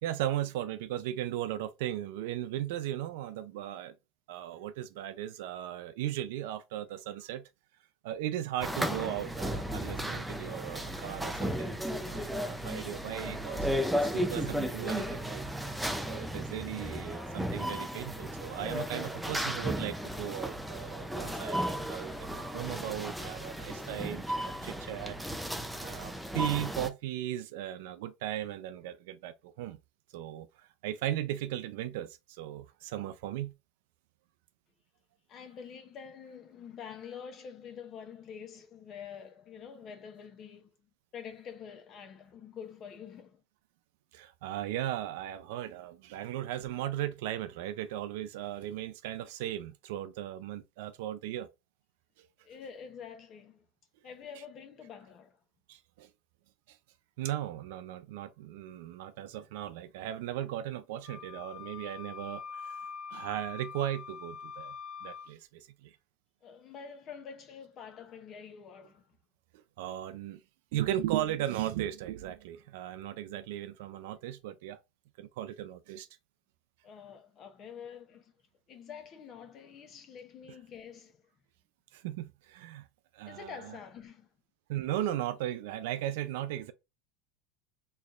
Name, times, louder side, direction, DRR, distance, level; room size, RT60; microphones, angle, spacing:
voice 1, 0.0-3.9 4.3-7.4 8.0-13.7 14.0-25.2 25.8-29.8 30.1-33.5 44.1-51.5 52.2-52.3 55.7-56.1 56.7-56.8 57.2-62.8 63.1-64.8 65.0-66.0 69.8-70.4 70.7-74.8 75.2-76.1 81.9-82.9 83.1-83.8 84.7-86.7, right 12 dB, 70° right, 0.4 m, -37 dB
sound 1, 8.6-26.9, equal, ahead, 0.4 m, -35 dB
voice 2, 35.3-40.7 41.1-43.4 52.4-53.6 54.0-55.4 66.4-69.1 76.8-78.3 78.7-81.2 83.3-84.3, left 7 dB, 30° left, 0.7 m, -47 dB
Wind instrument woodwind instrument, 61.0-65.3, left 6 dB, 15° left, 1.1 m, -44 dB
4.2 x 3.1 x 2.4 m
supercardioid pair, 160°, 0 cm